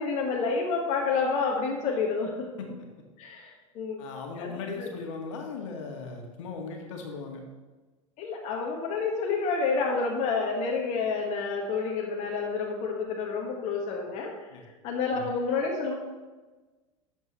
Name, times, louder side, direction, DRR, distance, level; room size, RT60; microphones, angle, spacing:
voice 1, 0.0-2.5 3.2-4.0 4.4-4.9 8.2-14.5 14.8-15.9, left 4 dB, 45° left, -1 dB, 1.4 m, -29 dB
voice 2, 4.0-7.4 14.5-14.6 15.1-15.2, left 4 dB, 60° left, 2 dB, 1.7 m, -38 dB
12.0 x 7.2 x 3.1 m, 1.3 s
figure-of-eight pair, 80°, 17 cm